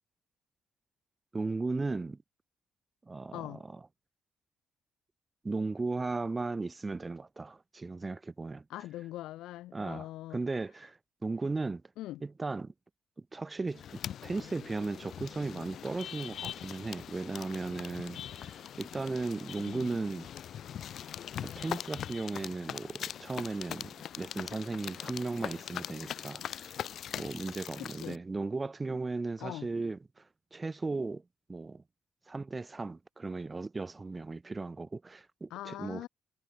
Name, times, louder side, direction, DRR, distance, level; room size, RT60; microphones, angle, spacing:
voice 1, 1.3-2.2 3.1-3.8 5.4-8.6 9.7-11.8 12.2-12.7 13.3-13.8 14.2-20.3 21.4-23.9 24.2-26.8 27.2-30.2 30.5-31.2 31.5-31.8 32.3-36.1, right 3 dB, 25° right, 1.1 m, -36 dB
voice 2, 8.7-10.4 12.0-12.2 19.6-20.0 27.8-28.2 29.4-29.7 35.5-36.1, left 15 dB, 85° left, 3.3 m, -42 dB
sound 1, 13.7-28.2, left 9 dB, 65° left, 5.0 m, -42 dB
cardioid pair, 80°, 0 cm